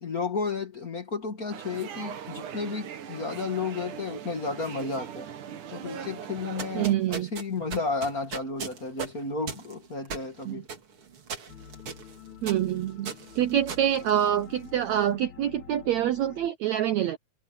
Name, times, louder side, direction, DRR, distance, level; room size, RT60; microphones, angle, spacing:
voice 1, 0.0-5.3 5.7-10.7, left 4 dB, 35° left, 1.6 m, -32 dB
sound 1, 1.5-6.9, right 8 dB, 60° right, 3.1 m, -40 dB
sound 2, 6.4-14.8, right 6 dB, 40° right, 2.7 m, -39 dB
voice 2, 6.7-7.3 10.4-10.6 12.4-17.2, right 11 dB, 85° right, 1.5 m, -26 dB
sound 3, 11.5-16.5, left 8 dB, 80° left, 4.1 m, -48 dB
omnidirectional pair, 4.3 m